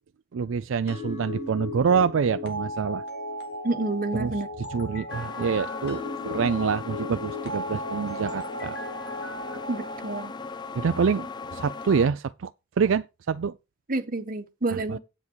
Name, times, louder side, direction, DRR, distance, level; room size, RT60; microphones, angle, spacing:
voice 1, 0.3-3.0 4.1-4.3 4.7-8.8 10.8-12.5 12.8-13.5 14.9-15.0, right 6 dB, 75° right, 0.4 m, -26 dB
sound 1, 0.9-10.3, left 1 dB, 60° left, 2.4 m, -36 dB
voice 2, 3.6-4.5 9.7-10.3 13.9-15.0, right 2 dB, 45° right, 1.2 m, -29 dB
sound 2, 5.1-12.1, left 4 dB, 20° left, 0.5 m, -38 dB
9.7 x 8.2 x 4.5 m
head